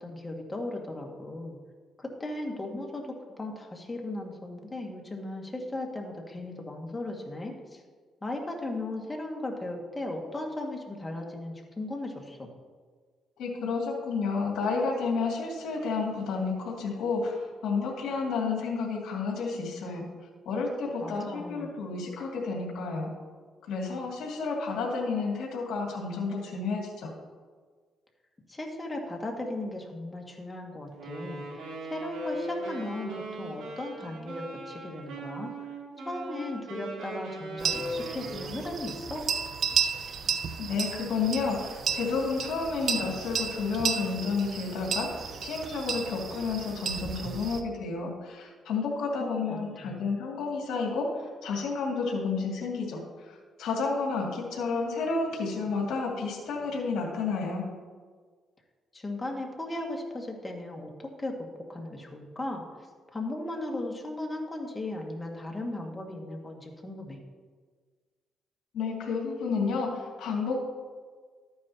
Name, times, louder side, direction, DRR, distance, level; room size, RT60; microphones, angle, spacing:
voice 1, 0.0-1.6 2.0-7.8 8.2-12.5 21.0-21.7 28.5-35.5 36.0-39.3 49.2-50.0 58.9-61.4 61.7-62.6 63.1-67.2, left 1 dB, 20° left, 1 dB, 1.9 m, -37 dB
voice 2, 13.4-20.1 20.5-23.1 23.6-27.1 40.6-45.1 45.4-57.7 68.7-70.6, left 4 dB, 75° left, -1 dB, 2.2 m, -31 dB
Wind instrument woodwind instrument, 30.9-38.9, right 1 dB, 90° right, 3.2 m, -39 dB
sound 1, 37.6-47.6, right 6 dB, 60° right, 0.8 m, -33 dB
13.0 x 9.5 x 2.9 m, 1.6 s
cardioid pair, 90°, 0 cm